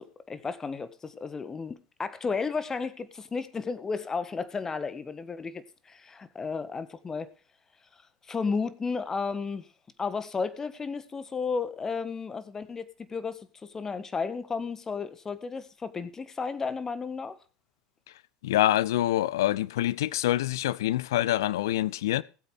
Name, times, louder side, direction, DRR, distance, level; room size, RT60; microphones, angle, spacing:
voice 1, 0.0-7.3 8.3-9.7 10.0-17.4, left 5 dB, 20° left, 1.6 m, -33 dB
voice 2, 18.4-22.2, left 14 dB, 65° left, 0.6 m, -26 dB
20.0 x 8.6 x 3.5 m
figure-of-eight pair, 70°, 2 cm